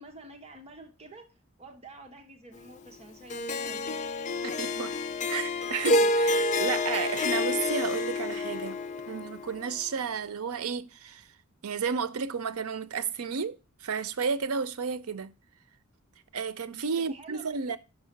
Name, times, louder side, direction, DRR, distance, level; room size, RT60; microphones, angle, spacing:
voice 1, 0.0-1.3 1.6-4.0 17.0-17.8, right 2 dB, 30° right, 1.0 m, -49 dB
Harp, 3.3-9.7, left 2 dB, 35° left, 0.4 m, -28 dB
voice 2, 4.4-5.0 5.3-8.8 9.1-11.2 11.6-13.6 13.8-15.3 16.3-17.8, right 6 dB, 90° right, 0.6 m, -32 dB
6.0 x 4.8 x 6.4 m
head